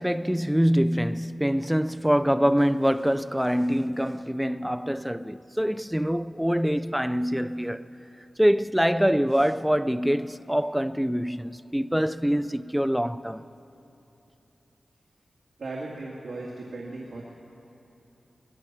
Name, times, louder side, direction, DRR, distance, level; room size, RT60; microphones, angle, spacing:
voice 1, 0.0-7.9 8.4-13.4, equal, 5° right, 0.4 m, -24 dB
voice 2, 15.6-17.2, right 2 dB, 65° right, 2.3 m, -37 dB
23.5 x 20.5 x 6.1 m
wide cardioid pair, 100°, 0 cm